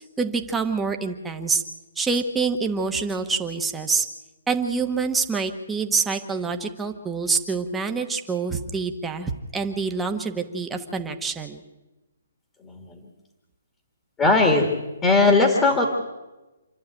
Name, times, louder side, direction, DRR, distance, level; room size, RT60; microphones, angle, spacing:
voice 1, 0.2-1.6 2.0-4.0 4.5-11.6, right 4 dB, 5° right, 4 dB, 1.2 m, -26 dB
voice 2, 12.6-13.0 14.2-14.7 15.0-15.8, left 3 dB, 10° left, 2 dB, 1.9 m, -18 dB
27.5 x 11.0 x 9.1 m, 1.1 s
hypercardioid pair, 165°, 0 cm